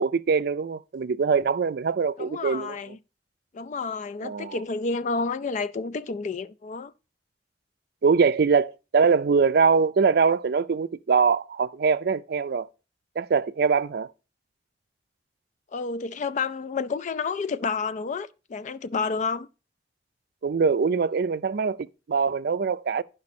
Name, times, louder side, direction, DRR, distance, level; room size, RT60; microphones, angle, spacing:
voice 1, 0.0-2.8 4.2-4.6 8.0-12.7 13.2-14.1 20.4-23.0, right 5 dB, 60° right, 0.4 m, -23 dB
voice 2, 2.2-3.0 3.5-6.9 15.7-19.5, left 4 dB, 45° left, 0.4 m, -30 dB
10.5 x 5.3 x 4.2 m
head